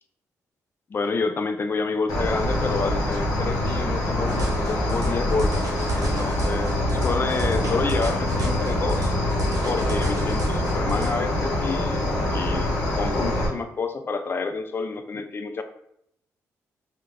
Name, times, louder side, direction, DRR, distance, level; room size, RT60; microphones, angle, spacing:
voice 1, 0.9-5.6 5.9-9.1 9.7-12.1 12.3-15.6, left 4 dB, 35° left, 8 dB, 0.4 m, -29 dB
Cricket, 2.1-13.5, left 1 dB, 80° left, 0.6 m, -25 dB
sound 1, 4.3-11.1, equal, 60° right, 0.6 m, -30 dB
2.2 x 2.1 x 3.2 m, 0.73 s
supercardioid pair, 60°, 7 cm